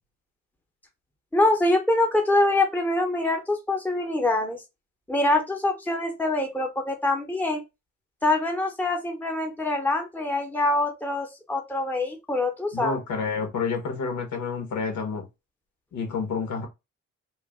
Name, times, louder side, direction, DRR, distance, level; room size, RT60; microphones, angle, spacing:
voice 1, 1.3-4.6 5.1-7.6 8.2-13.0, left 2 dB, 5° left, 1.0 m, -24 dB
voice 2, 12.7-15.2 15.9-16.7, left 5 dB, 75° left, 1.5 m, -29 dB
3.1 x 2.5 x 3.7 m
cardioid pair, 90°, 30 cm